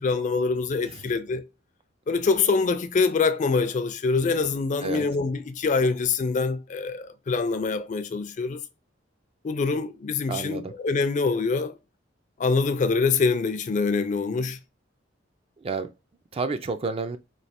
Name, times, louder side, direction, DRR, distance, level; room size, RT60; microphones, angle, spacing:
voice 1, 0.0-1.4 2.1-8.6 9.4-11.8 12.4-14.6, left 4 dB, 40° left, 0.4 m, -25 dB
voice 2, 10.3-10.7 15.6-15.9 16.3-17.2, right 4 dB, 30° right, 0.3 m, -30 dB
3.1 x 2.5 x 4.2 m
head